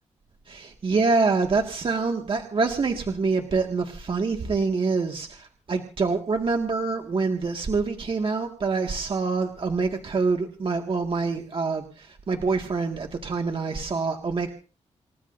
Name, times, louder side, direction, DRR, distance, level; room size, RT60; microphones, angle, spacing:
voice 1, 0.5-14.5, right 4 dB, 45° right, 3 dB, 2.0 m, -26 dB
28.5 x 16.0 x 2.7 m, 0.36 s
cardioid pair, 85°, 12 cm